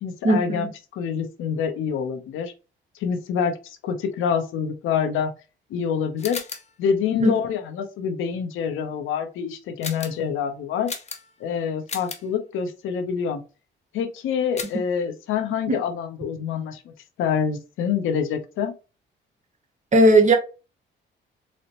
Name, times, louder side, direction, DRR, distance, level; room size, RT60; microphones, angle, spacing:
voice 1, 0.0-2.5 3.0-5.3 5.7-6.4 6.8-10.9 11.4-13.4 13.9-16.9 17.2-18.7, left 7 dB, 85° left, 0.7 m, -26 dB
sound 1, 6.2-6.8 9.8-10.3 10.9-11.4 11.9-12.3 14.6-14.9, left 5 dB, 35° left, 0.7 m, -35 dB
voice 2, 19.9-20.4, right 1 dB, 35° right, 0.9 m, -15 dB
4.0 x 2.1 x 2.9 m
cardioid pair, 90°, 20 cm